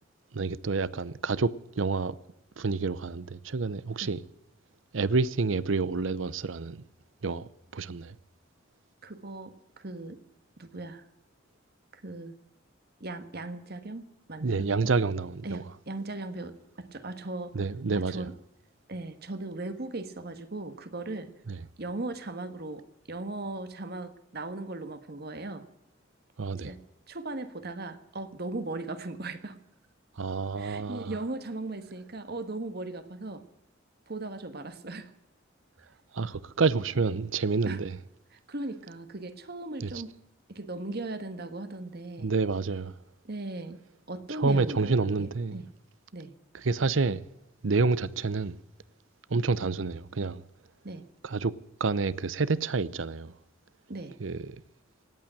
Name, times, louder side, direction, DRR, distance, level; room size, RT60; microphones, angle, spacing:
voice 1, 0.3-2.2 2.6-4.2 4.9-6.8 7.2-8.1 14.4-15.6 17.5-18.3 21.5-21.6 26.4-26.7 30.2-31.2 36.1-38.0 39.8-39.9 42.2-42.9 44.3-45.6 46.5-47.2 47.6-48.6 49.3-50.4 51.2-51.5 51.8-53.3 54.2-54.6, right 4 dB, 75° right, 0.7 m, -28 dB
voice 2, 9.0-10.2 10.6-11.1 11.9-12.3 13.0-14.7 15.4-17.5 17.9-18.3 18.9-21.3 21.8-25.7 26.6-26.8 27.1-29.6 30.6-33.4 34.1-35.1 37.6-37.8 38.5-40.1 40.5-42.3 43.2-43.8 44.1-45.7 46.1-46.3 50.8-51.0 53.9-54.2, right 2 dB, 55° right, 1.5 m, -38 dB
18.0 x 8.9 x 9.0 m
head